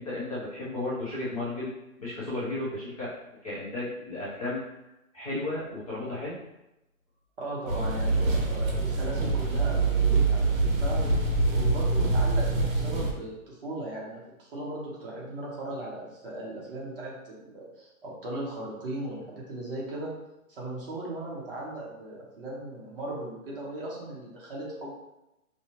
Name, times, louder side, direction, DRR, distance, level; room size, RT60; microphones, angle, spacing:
voice 1, 0.0-1.7 2.0-3.1 3.4-4.6 5.1-6.4, left 2 dB, 25° left, -9 dB, 0.8 m, -33 dB
voice 2, 7.4-11.0 11.4-20.1 20.5-24.9, right 1 dB, 40° right, -5 dB, 1.2 m, -37 dB
sound 1, 7.7-13.1, right 3 dB, 60° right, 1.2 m, -25 dB
5.2 x 2.3 x 2.9 m, 0.93 s
hypercardioid pair, 175°, 44 cm